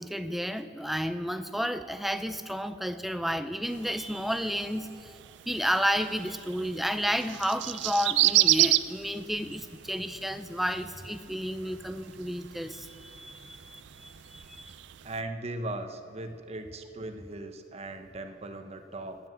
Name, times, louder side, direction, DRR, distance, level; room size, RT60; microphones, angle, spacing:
voice 1, 0.0-5.2 5.5-14.8, equal, ahead, 10 dB, 0.4 m, -32 dB
sound 1, 3.6-15.2, right 16 dB, 70° right, 0.3 m, -32 dB
voice 2, 15.0-19.2, right 2 dB, 35° right, 7 dB, 0.8 m, -38 dB
10.5 x 9.3 x 7.4 m, 2.7 s
head